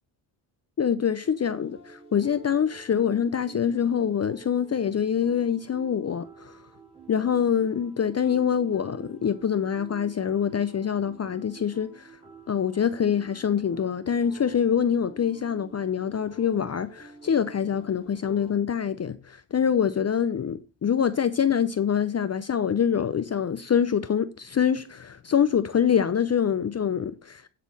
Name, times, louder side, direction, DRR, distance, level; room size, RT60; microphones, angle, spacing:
voice 1, 0.8-6.5 7.1-12.1 12.5-27.5, left 8 dB, 35° left, 0.6 m, -25 dB
sound 1, 1.2-18.6, right 4 dB, 10° right, 2.7 m, -49 dB
10.0 x 4.2 x 5.4 m
cardioid pair, 70°, 48 cm